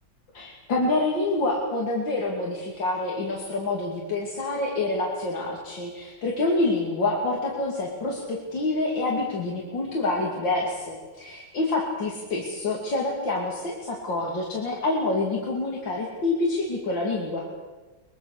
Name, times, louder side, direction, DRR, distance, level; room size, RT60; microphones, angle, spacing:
voice 1, 0.3-17.5, left 2 dB, 80° left, -1 dB, 3.5 m, -27 dB
24.0 x 22.5 x 6.7 m, 1.3 s
omnidirectional pair, 2.0 m